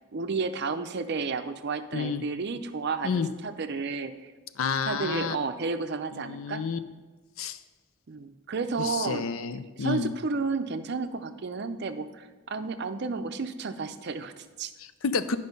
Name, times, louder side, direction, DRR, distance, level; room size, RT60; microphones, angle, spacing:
voice 1, 0.1-3.1 3.4-4.3 4.9-6.6 8.1-9.2 9.8-14.7, right 4 dB, 50° right, 9 dB, 0.5 m, -32 dB
voice 2, 4.6-5.4 6.1-6.8 7.4-7.6 8.8-10.1 14.8-15.4, left 5 dB, 70° left, 12 dB, 0.5 m, -30 dB
10.0 x 5.3 x 5.3 m, 1.2 s
head